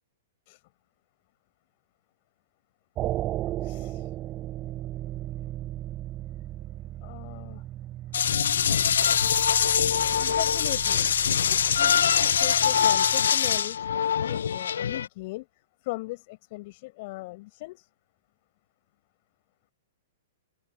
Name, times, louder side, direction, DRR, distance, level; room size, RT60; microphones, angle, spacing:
sound 1, 3.0-13.2, right 14 dB, 30° right, 3.8 m, -36 dB
voice 1, 3.4-4.2 7.0-7.6 10.2-11.1 11.5-13.9 14.2-15.5 15.8-17.9, left 22 dB, 45° left, 7.3 m, -38 dB
sound 2, 8.1-15.1, left 8 dB, 70° left, 0.5 m, -23 dB
open air
figure-of-eight pair, 110°, 0 cm